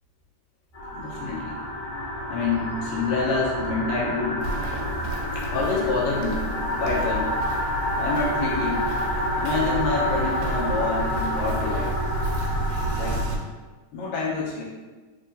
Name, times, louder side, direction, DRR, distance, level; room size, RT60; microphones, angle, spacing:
sound 1, 0.7-13.3, equal, 55° left, 1.7 m, -29 dB
voice 1, 0.9-1.6 2.3-4.5 5.3-6.4 6.7-7.3 8.0-8.9 9.4-12.0 12.9-13.3 13.9-14.6, left 4 dB, 75° left, -4 dB, 1.9 m, -27 dB
Walk footsteps, 4.4-13.4, right 1 dB, 85° right, 2.0 m, -31 dB
4.6 x 3.2 x 2.6 m, 1.3 s
omnidirectional pair, 3.3 m